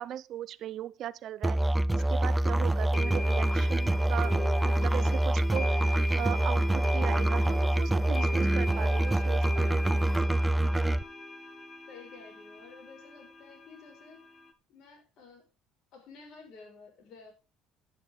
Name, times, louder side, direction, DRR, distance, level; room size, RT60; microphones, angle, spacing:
voice 1, 0.0-10.0, right 11 dB, 60° right, 0.6 m, -38 dB
Musical instrument, 1.4-11.0, right 1 dB, 10° right, 0.5 m, -26 dB
sound 1, 2.0-2.1 2.9-14.5, left 2 dB, 25° left, 1.5 m, -40 dB
voice 2, 10.7-11.2 11.9-14.2 14.7-15.5 15.9-17.3, left 4 dB, 65° left, 5.8 m, -52 dB
11.0 x 9.5 x 3.9 m
supercardioid pair, 80°, 0 cm